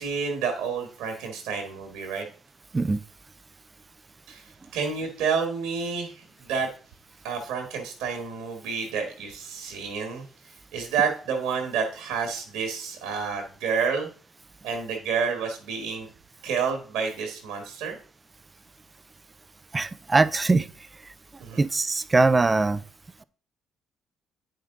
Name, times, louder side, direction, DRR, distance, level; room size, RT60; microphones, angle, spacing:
voice 1, 0.0-2.3 4.3-4.4 4.7-6.7 7.2-14.1 14.6-16.1 16.4-18.0 21.4-21.6, right 6 dB, 80° right, 3 dB, 1.7 m, -29 dB
voice 2, 19.7-20.7 21.6-22.8, right 3 dB, 30° right, 15 dB, 0.6 m, -21 dB
9.4 x 5.2 x 3.8 m, 0.40 s
hypercardioid pair, 50°, 0 cm